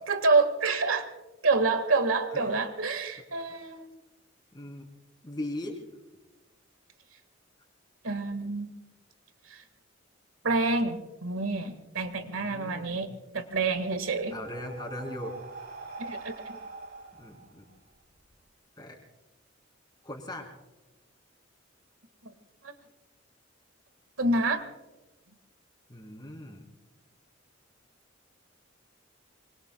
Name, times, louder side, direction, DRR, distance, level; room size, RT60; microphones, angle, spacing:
voice 1, 0.1-1.1 1.4-3.9 8.0-8.7 9.5-9.6 10.4-13.1 13.3-14.4 16.0-16.3 22.6-22.7 24.2-24.6, right 3 dB, 90° right, 9 dB, 1.7 m, -27 dB
voice 2, 4.5-4.9 5.2-5.9 12.2-13.2 14.3-15.6 17.1-17.7 18.8-19.0 20.0-20.5 25.9-26.6, left 1 dB, 20° left, 1 dB, 3.5 m, -39 dB
Breathing, 13.7-18.3, right 3 dB, 50° right, 2.9 m, -44 dB
26.0 x 24.5 x 2.3 m, 1.1 s
head